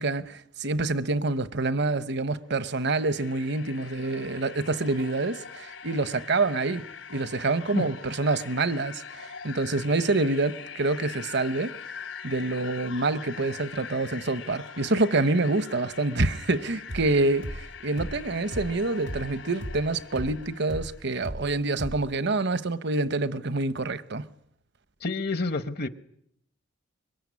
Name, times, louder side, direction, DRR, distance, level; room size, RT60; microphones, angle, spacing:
voice 1, 0.0-11.8 12.2-24.3, right 2 dB, 65° right, 1.1 m, -27 dB
sound 1, 2.4-21.0, left 6 dB, 85° left, 3.2 m, -43 dB
sound 2, 16.9-21.5 21.8-22.0, equal, 90° right, 2.8 m, -37 dB
voice 2, 25.0-25.9, left 3 dB, 55° left, 1.1 m, -28 dB
25.0 x 22.5 x 9.7 m
head